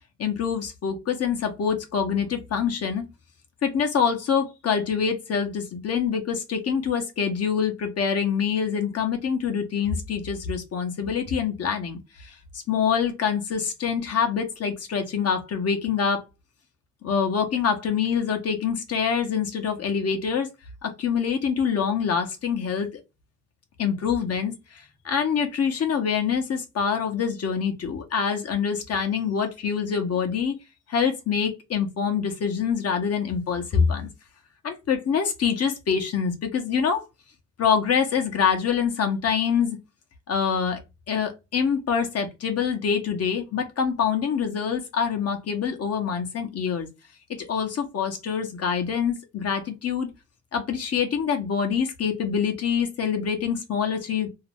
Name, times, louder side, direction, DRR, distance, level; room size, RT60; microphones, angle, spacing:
voice 1, 0.2-3.0 3.6-12.4 12.7-16.2 17.0-20.5 20.8-22.9 23.8-30.5 30.9-34.1 34.6-37.0 37.6-39.8 40.3-40.8 41.1-46.9 47.4-50.1 50.5-54.3, left 7 dB, 55° left, 1.0 m, -25 dB
2.8 x 2.0 x 3.4 m
cardioid pair, 90°, 30 cm